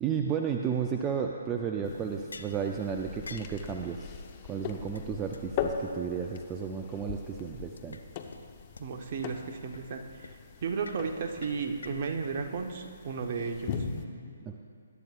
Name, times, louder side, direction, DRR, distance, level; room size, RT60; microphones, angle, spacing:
voice 1, 0.0-4.2 4.4-8.0 14.5-14.6, right 7 dB, 15° right, 3 dB, 0.5 m, -33 dB
sound 1, 1.8-14.0, left 6 dB, 30° left, 0.9 m, -40 dB
sound 2, 2.3-2.6 3.3-3.6 4.3-4.4 4.6-4.7 5.0-5.1 5.3-5.4 5.9-6.0 6.3-6.4 7.8-8.0 8.3-8.4 8.8-8.9 9.2-9.3 9.7-9.9 10.2-10.4 10.8-11.0 11.4-12.3, left 3 dB, 70° left, 0.7 m, -46 dB
voice 2, 8.8-13.7, right 5 dB, 45° right, 4 dB, 1.2 m, -34 dB
21.0 x 10.5 x 2.5 m, 2.4 s
figure-of-eight pair, 135°, 0 cm